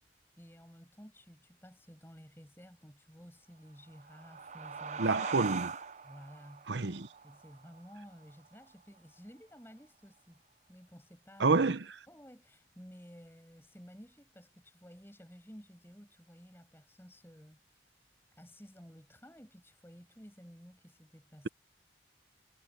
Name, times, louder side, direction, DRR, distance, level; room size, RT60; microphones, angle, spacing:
voice 1, 0.4-5.1 6.0-6.7 7.2-10.4 10.7-11.5 12.1-17.8 18.4-21.5, equal, 10° left, 7.4 m, -54 dB
sound 1, 3.8-9.0, right 5 dB, 40° right, 0.6 m, -42 dB
voice 2, 5.0-5.7 6.7-7.1 11.4-11.9, right 3 dB, 70° right, 0.9 m, -28 dB
head